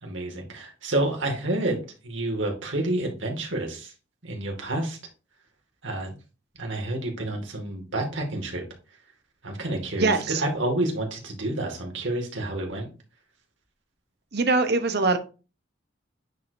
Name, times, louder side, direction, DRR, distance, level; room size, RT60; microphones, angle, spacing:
voice 1, 0.0-1.8 2.0-3.9 4.2-5.0 5.8-6.1 6.6-8.6 9.4-12.9, right 1 dB, 80° right, 2.2 m, -29 dB
voice 2, 10.0-10.4 14.3-15.2, right 3 dB, 55° right, 1.0 m, -22 dB
9.1 x 4.8 x 2.7 m
head